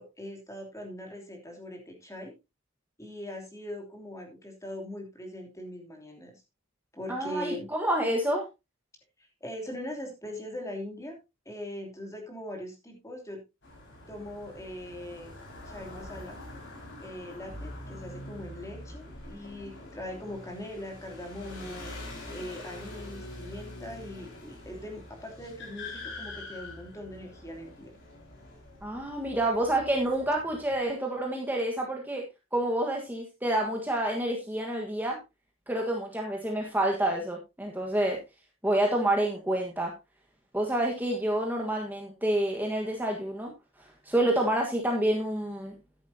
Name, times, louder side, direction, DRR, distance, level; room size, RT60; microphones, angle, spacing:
voice 1, 0.0-2.3 3.0-6.4 6.9-7.7 9.2-11.2 11.4-13.4 14.1-15.3 15.6-16.4 17.0-27.9, left 1 dB, 15° left, 2 dB, 3.0 m, -41 dB
voice 2, 7.1-8.4 28.8-35.2 35.7-38.2 38.6-39.9 40.5-43.5 43.8-45.7, right 1 dB, 10° right, 0 dB, 1.5 m, -28 dB
sound 1, 13.6-30.8, left 2 dB, 55° left, 5.3 m, -45 dB
13.0 x 10.5 x 2.8 m, 0.25 s
head